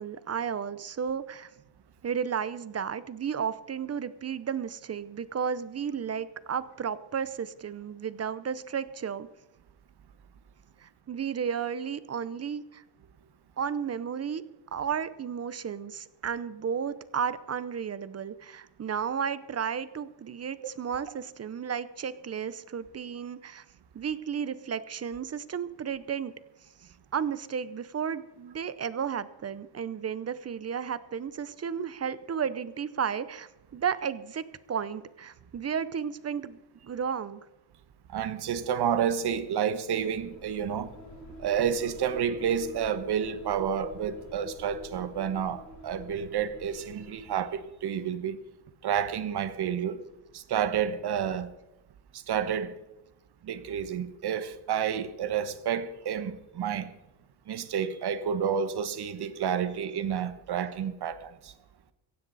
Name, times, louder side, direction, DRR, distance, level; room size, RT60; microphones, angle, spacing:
voice 1, 0.0-1.5 2.0-9.3 10.8-12.8 13.6-14.4 14.7-23.6 23.9-26.3 26.8-37.4, right 7 dB, 35° right, 0.7 m, -33 dB
voice 2, 38.1-40.9 41.4-48.4 48.8-50.0 50.3-51.5 52.1-52.8 53.4-56.9 57.5-61.5, right 8 dB, 55° right, 1.3 m, -30 dB
sound 1, 40.0-47.8, equal, 35° left, 4.0 m, -47 dB
16.5 x 15.5 x 4.1 m
cardioid pair, 140°, 46 cm